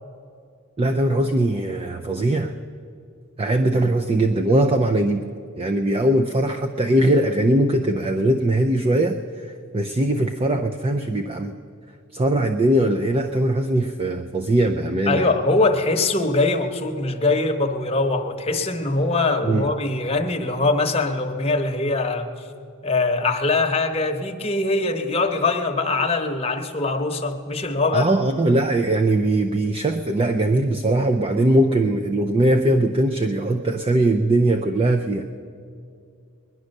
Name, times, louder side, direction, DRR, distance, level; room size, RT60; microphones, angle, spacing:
voice 1, 0.8-2.5 3.4-5.2 5.6-9.2 9.4-11.5 12.1-15.3 19.4-19.7 27.9-35.3, right 1 dB, 25° right, 7 dB, 0.5 m, -20 dB
voice 2, 15.1-22.3 22.8-28.1, left 3 dB, 25° left, 4 dB, 1.0 m, -22 dB
20.5 x 11.0 x 6.5 m, 2.4 s
head